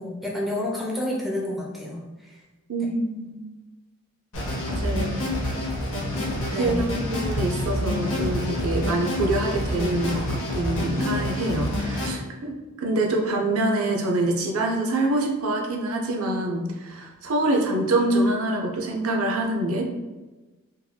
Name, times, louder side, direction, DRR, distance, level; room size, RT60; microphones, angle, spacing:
voice 1, 0.0-2.4 6.2-6.9, left 1 dB, ahead, -4 dB, 0.5 m, -30 dB
voice 2, 2.7-3.3 4.7-5.2 6.5-12.5 12.8-19.9, right 2 dB, 85° right, 1 dB, 0.5 m, -25 dB
sound 1, 4.3-12.1, left 1 dB, 70° left, 0.8 m, -27 dB
3.8 x 2.7 x 2.3 m, 1.2 s
head